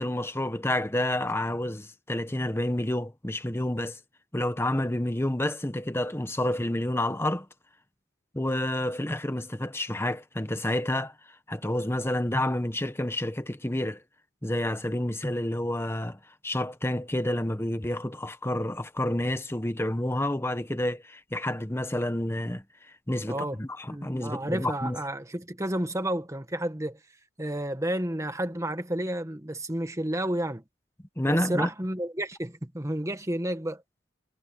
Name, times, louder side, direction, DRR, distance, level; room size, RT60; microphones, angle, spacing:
voice 1, 0.0-4.0 4.3-7.5 8.3-11.1 11.5-14.0 14.4-22.6 23.1-25.0 31.2-31.7, left 1 dB, 15° left, 1.2 m, -29 dB
voice 2, 23.3-23.6 23.9-27.0 27.4-30.6 31.2-33.8, right 1 dB, 15° right, 1.6 m, -31 dB
head